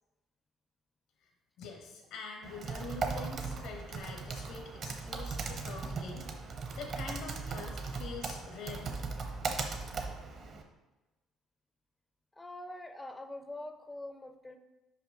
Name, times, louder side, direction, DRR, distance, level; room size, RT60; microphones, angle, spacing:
voice 1, 1.6-6.3 6.7-9.0, left 4 dB, 80° left, 1 dB, 1.1 m, -45 dB
Typing, 2.4-10.6, right 4 dB, 40° right, 0.7 m, -38 dB
voice 2, 12.3-14.6, left 1 dB, 10° left, 8 dB, 0.4 m, -44 dB
5.7 x 5.0 x 3.7 m, 1.1 s
cardioid pair, 140°, 0 cm